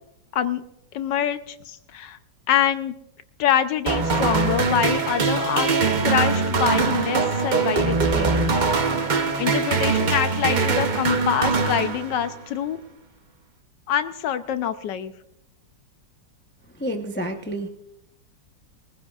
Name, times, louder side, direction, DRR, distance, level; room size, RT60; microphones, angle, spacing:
voice 1, 0.9-2.2 2.5-2.9 3.4-5.7 6.0-8.6 9.1-12.8 13.9-15.1, left 9 dB, 75° left, 10 dB, 1.3 m, -25 dB
sound 1, 3.9-12.4, right 4 dB, 50° right, 0.5 m, -22 dB
voice 2, 16.8-17.7, right 1 dB, 15° left, 4 dB, 0.3 m, -29 dB
22.0 x 15.5 x 2.4 m, 0.83 s
omnidirectional pair, 2.0 m